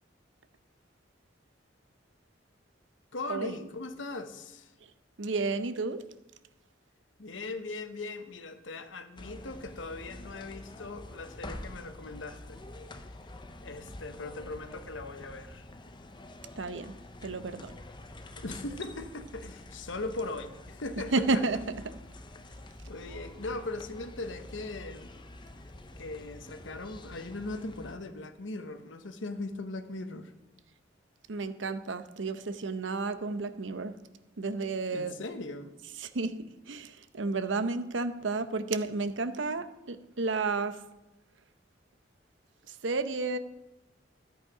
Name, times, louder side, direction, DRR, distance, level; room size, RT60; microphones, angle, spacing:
voice 1, 3.1-4.7 7.2-12.6 13.6-15.7 18.3-21.4 22.9-25.1 26.0-30.3 34.9-35.7, left 2 dB, 80° left, 9 dB, 1.0 m, -39 dB
voice 2, 5.2-6.0 16.6-16.9 17.2-17.7 21.1-21.6 31.3-34.0 34.4-35.2 36.0-36.3 36.7-40.8 42.7-43.4, right 3 dB, 75° right, 11 dB, 0.8 m, -31 dB
sound 1, 9.2-27.9, left 1 dB, 25° left, 0.8 m, -47 dB
13.5 x 8.2 x 4.9 m, 0.98 s
head